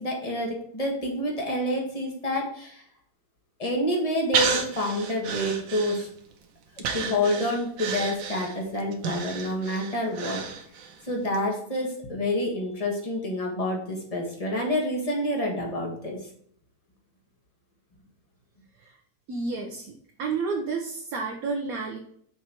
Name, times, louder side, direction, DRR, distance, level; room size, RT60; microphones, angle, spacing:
voice 1, 0.0-2.8 3.6-6.1 6.9-10.4 11.0-16.2, left 1 dB, 20° left, -1 dB, 1.5 m, -28 dB
Breathing, 4.3-6.3 6.8-11.0 11.3-11.4, right 6 dB, 85° right, 1.6 m, -31 dB
voice 2, 19.3-19.9 20.2-22.0, right 4 dB, 55° right, 1 dB, 1.2 m, -30 dB
6.7 x 4.6 x 4.4 m, 0.65 s
omnidirectional pair, 2.0 m